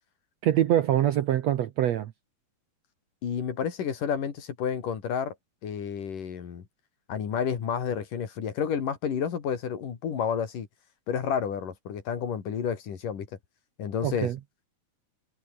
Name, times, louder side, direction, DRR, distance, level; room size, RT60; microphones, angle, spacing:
voice 1, 0.4-2.1 14.0-14.4, right 11 dB, 75° right, 1.5 m, -24 dB
voice 2, 3.2-5.4 5.6-6.6 7.1-10.7 11.1-13.3 13.8-14.3, left 7 dB, 60° left, 4.2 m, -30 dB
omnidirectional pair, 4.4 m